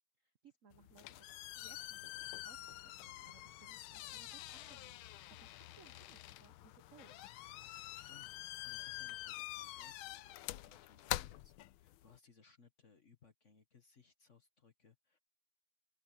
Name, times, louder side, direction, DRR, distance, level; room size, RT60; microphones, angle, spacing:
voice 1, 0.2-1.3 1.6-7.2, right 6 dB, 55° right, 0.9 m, -65 dB
sound 1, 0.7-12.2, left 16 dB, 80° left, 1.4 m, -46 dB
voice 2, 7.7-15.2, left 6 dB, 40° left, 1.4 m, -66 dB
open air
omnidirectional pair, 2.4 m